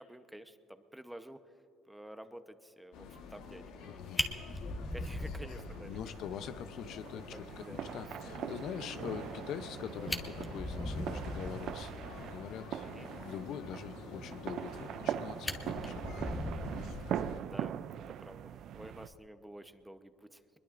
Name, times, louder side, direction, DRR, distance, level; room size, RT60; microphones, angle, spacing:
voice 1, 0.0-1.4 1.9-4.0 4.9-6.2 7.3-7.8 12.8-13.1 17.4-20.4, right 1 dB, 5° right, 9 dB, 0.9 m, -50 dB
sound 1, 2.9-17.4, left 5 dB, 85° left, 1.4 m, -49 dB
Fire, 3.7-3.8 4.2-6.1 6.4-6.5 6.9-7.0 7.4-7.5 9.6-9.7 10.0-11.7 14.6-15.1 15.4-17.6 18.9-19.2, left 1 dB, 15° left, 1.3 m, -39 dB
voice 2, 3.9-4.2 5.8-16.2 16.8-17.0, left 8 dB, 70° left, 11 dB, 0.7 m, -44 dB
sound 2, 5.6-19.1, right 10 dB, 65° right, 0.4 m, -42 dB
23.0 x 21.5 x 2.5 m, 2.9 s
cardioid pair, 90°, 0 cm